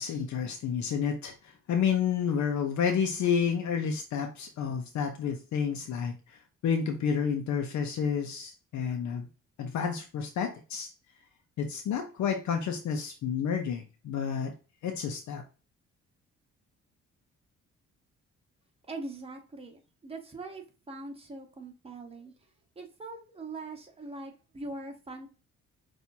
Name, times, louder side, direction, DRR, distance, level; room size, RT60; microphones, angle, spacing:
voice 1, 0.0-1.3 1.7-6.4 6.6-9.3 9.6-10.9 11.6-14.5 14.8-15.4, left 7 dB, 70° left, 4 dB, 0.7 m, -30 dB
voice 2, 18.9-22.3 22.7-25.3, right 2 dB, 20° right, 2 dB, 1.2 m, -42 dB
5.9 x 2.6 x 2.8 m, 0.33 s
cardioid pair, 90°, 30 cm